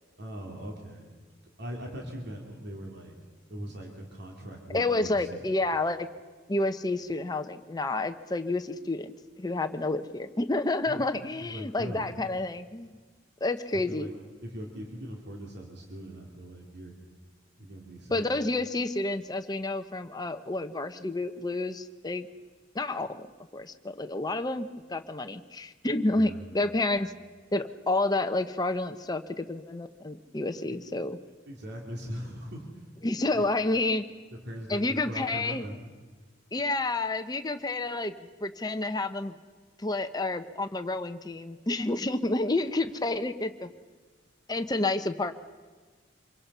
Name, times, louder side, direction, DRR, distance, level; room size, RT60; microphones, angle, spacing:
voice 1, 0.2-1.1 1.6-3.1 3.5-5.4 10.9-11.0 11.4-12.1 13.7-14.1 14.4-16.9 17.6-18.3 26.1-26.4 30.6-30.8 31.5-32.8 33.3-33.5 34.4-35.8, equal, 60° right, 0 dB, 2.9 m, -40 dB
voice 2, 4.7-6.1 6.5-13.0 13.4-14.1 18.1-22.3 22.7-23.3 23.5-27.1 27.5-31.2 33.0-34.0 34.7-35.6 36.5-38.1 38.4-39.4 39.8-43.7 44.5-45.3, left 2 dB, 20° left, 7 dB, 0.8 m, -29 dB
26.0 x 22.5 x 5.6 m, 1.5 s
head